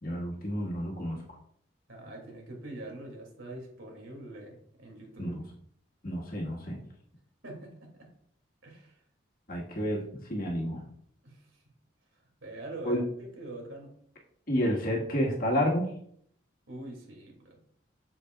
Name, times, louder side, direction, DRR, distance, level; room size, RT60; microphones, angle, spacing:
voice 1, 0.0-1.2 5.2-5.4 6.0-6.8 9.5-10.9 12.8-13.0 14.5-15.9, equal, 45° left, -2 dB, 1.7 m, -30 dB
voice 2, 1.9-5.3 7.4-8.1 8.6-9.0 11.2-11.6 12.4-13.9 16.7-17.6, right 2 dB, 85° right, 0 dB, 2.5 m, -44 dB
7.6 x 7.1 x 2.4 m, 0.65 s
head